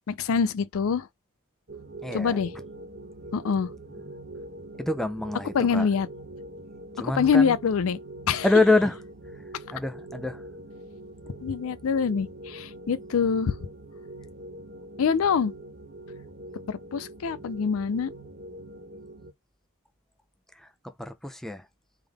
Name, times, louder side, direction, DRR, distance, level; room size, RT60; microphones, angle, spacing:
voice 1, 0.1-1.1 2.1-2.5 3.3-3.7 5.5-6.1 7.0-8.0 8.3-8.5 11.4-13.6 15.0-15.5 16.7-18.1, left 6 dB, 75° left, 0.4 m, -25 dB
sound 1, 1.7-19.3, right 1 dB, 45° right, 1.2 m, -43 dB
voice 2, 2.0-2.4 4.8-5.9 7.0-7.6 8.4-9.0 9.7-10.4 20.6-21.6, left 2 dB, ahead, 0.4 m, -26 dB
3.6 x 3.5 x 3.4 m
head